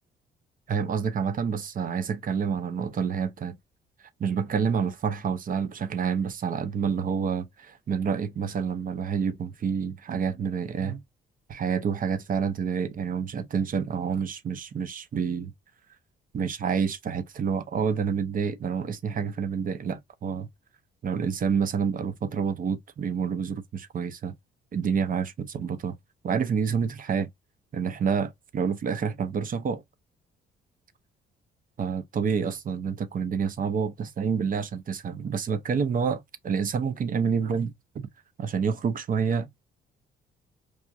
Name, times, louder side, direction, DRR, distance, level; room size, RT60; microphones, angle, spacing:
voice 1, 0.7-3.6 4.2-11.0 11.5-15.5 16.3-20.5 21.0-24.3 24.7-26.0 26.2-27.3 27.7-29.8 31.8-38.1 38.4-39.6, right 6 dB, 45° right, 0.6 m, -28 dB
4.8 x 2.4 x 2.5 m
cardioid pair, 90°, 20 cm